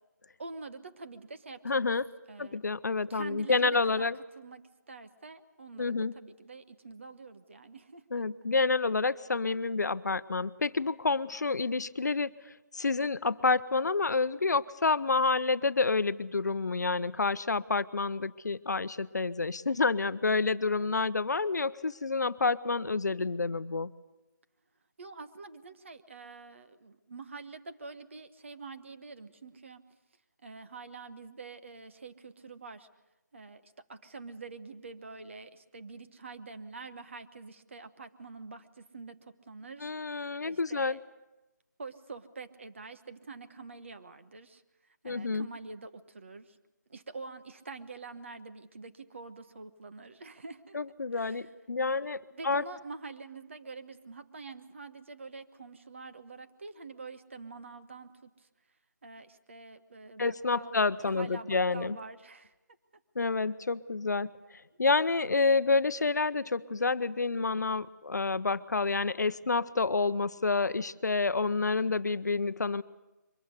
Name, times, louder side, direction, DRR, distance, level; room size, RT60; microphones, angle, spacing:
voice 1, 0.4-1.9 2.3-2.6 3.1-4.1 4.3-8.2 25.0-29.8 30.4-32.9 33.3-41.0 41.8-46.6 46.9-50.8 51.1-51.5 51.9-52.0 52.3-58.5 59.0-62.5, right 3 dB, 40° right, 10 dB, 1.1 m, -46 dB
voice 2, 1.6-2.1 2.4-4.2 5.8-6.1 8.1-12.3 12.7-23.9 39.8-41.0 45.0-45.5 50.7-52.6 60.2-62.0 63.2-64.3 64.8-72.8, left 4 dB, 65° left, 15 dB, 0.7 m, -29 dB
23.0 x 14.5 x 9.7 m, 1.0 s
figure-of-eight pair, 170°, 10 cm